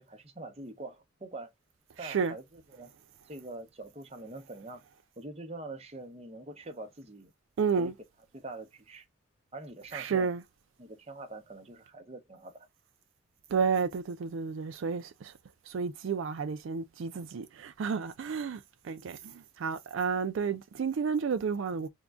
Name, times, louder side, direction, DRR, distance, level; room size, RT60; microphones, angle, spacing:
voice 1, 0.0-1.5 2.0-2.4 2.7-2.9 3.2-4.8 5.2-7.3 7.8-7.9 8.3-9.1 9.5-10.3 10.8-12.7, right 2 dB, 30° right, 0.8 m, -44 dB
voice 2, 2.0-2.3 7.6-7.9 9.9-10.4 13.5-15.3 15.7-21.9, right 5 dB, 75° right, 0.4 m, -31 dB
3.6 x 2.2 x 3.6 m
head